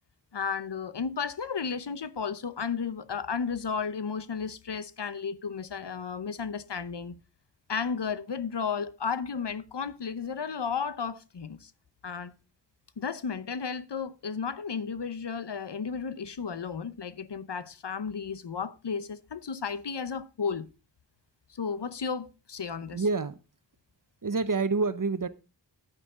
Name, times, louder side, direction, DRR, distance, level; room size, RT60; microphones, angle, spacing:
voice 1, 0.3-7.2 7.7-11.7 12.0-12.3 13.0-20.7 21.5-23.0, left 6 dB, 70° left, 0.8 m, -33 dB
voice 2, 22.9-23.4 24.2-25.3, right 4 dB, 50° right, 0.9 m, -27 dB
10.0 x 9.3 x 3.6 m
wide cardioid pair, 40°, 43 cm